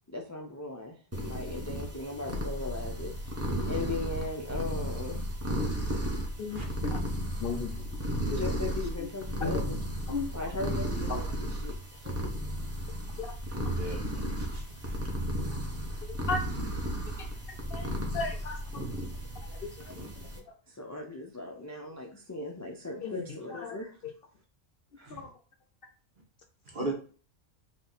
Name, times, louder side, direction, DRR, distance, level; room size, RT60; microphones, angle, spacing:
voice 1, 0.1-3.1 3.7-5.2 8.3-9.8 10.3-11.7 12.4-12.6 20.7-23.9 25.0-25.2, left 3 dB, 25° left, 0 dB, 0.4 m, -38 dB
sound 1, 1.1-20.4, equal, 15° right, 0.9 m, -34 dB
voice 2, 6.4-7.0 7.4-7.9 8.3-8.4 8.8-9.1 9.4-9.6 10.1-10.3 11.1-11.2 13.2-13.3 16.3-16.4 17.2-17.3 17.7-17.9 18.1-18.8 19.5-20.3 23.0-23.7 25.1-25.3, left 4 dB, 60° left, 5 dB, 0.7 m, -35 dB
voice 3, 13.7-15.0 25.1-25.2 26.7-26.9, right 2 dB, 45° right, 0 dB, 1.3 m, -38 dB
4.1 x 3.0 x 3.9 m, 0.39 s
omnidirectional pair, 1.2 m